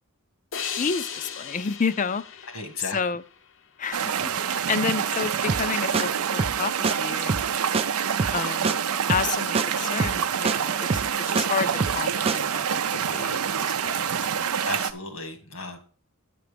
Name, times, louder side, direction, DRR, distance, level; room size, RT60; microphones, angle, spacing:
sound 1, 0.5-3.8, left 7 dB, 60° left, 0.7 m, -36 dB
voice 1, 0.5-2.5 2.9-3.2 3.8-7.4 8.3-8.8 9.1-13.4 13.8-14.5, left 5 dB, 35° left, 0.4 m, -30 dB
voice 2, 2.5-3.0 12.9-13.2 14.6-15.8, left 3 dB, 80° left, 1.7 m, -35 dB
sound 2, 3.9-14.9, right 8 dB, 90° right, 0.6 m, -27 dB
sound 3, 5.5-5.7 5.9-6.0 6.4-6.6 6.8-6.9 7.3-7.5 7.7-7.8 8.2-8.4 8.6-8.8 9.1-9.3 9.5-9.7 10.0-10.2 10.4-10.6 10.9-11.5 11.8-12.0 12.3-12.4, right 4 dB, 25° right, 0.4 m, -25 dB
9.2 x 6.0 x 5.1 m
head